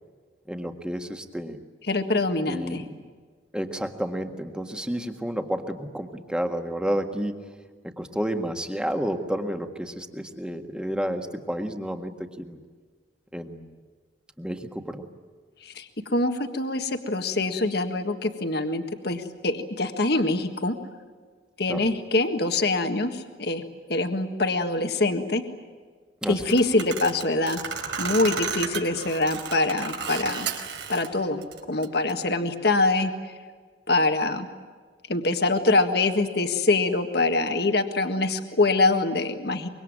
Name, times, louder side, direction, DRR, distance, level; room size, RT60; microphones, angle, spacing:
voice 1, 0.5-1.6 2.5-3.1 3.5-7.4 7.8-12.6 13.3-13.8 14.4-15.0 21.7-21.8 26.2-26.4, equal, 5° right, 5 dB, 1.7 m, -31 dB
voice 2, 1.9-2.8 15.6-20.7 21.6-23.6 23.9-25.4 26.3-27.6 28.0-30.5 30.9-33.1 33.9-34.5 35.1-39.7, left 2 dB, 60° left, 6 dB, 1.7 m, -24 dB
sound 1, 26.4-31.1 31.4-32.1, right 6 dB, 75° right, 4.4 m, -33 dB
25.0 x 23.5 x 8.9 m, 1.6 s
head